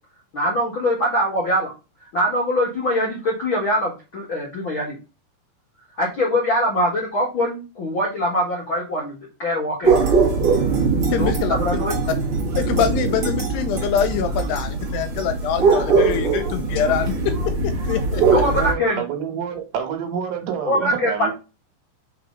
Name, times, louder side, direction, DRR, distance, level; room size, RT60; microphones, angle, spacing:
voice 1, 0.3-1.7 2.0-5.0 6.0-9.9 11.2-12.0 18.3-19.0 20.6-21.3, equal, 55° left, 1.4 m, -23 dB
sound 1, 9.8-18.7, right 4 dB, 55° right, 1.5 m, -21 dB
voice 2, 11.1-11.6 12.6-17.1 17.9-18.2, left 8 dB, 80° left, 2.6 m, -24 dB
voice 3, 18.1-21.3, right 8 dB, 75° right, 3.3 m, -28 dB
6.1 x 4.0 x 5.2 m
omnidirectional pair, 5.1 m